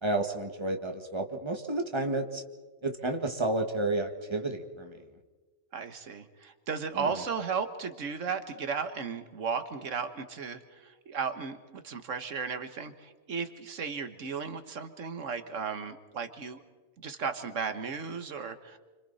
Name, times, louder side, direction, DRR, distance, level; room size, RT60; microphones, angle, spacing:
voice 1, 0.0-2.4 2.8-5.1 7.0-7.2, right 2 dB, 20° right, 4 dB, 1.8 m, -31 dB
voice 2, 5.7-16.6 17.0-18.8, right 5 dB, 80° right, 8 dB, 1.6 m, -35 dB
29.0 x 26.0 x 4.2 m, 1.3 s
omnidirectional pair, 1.3 m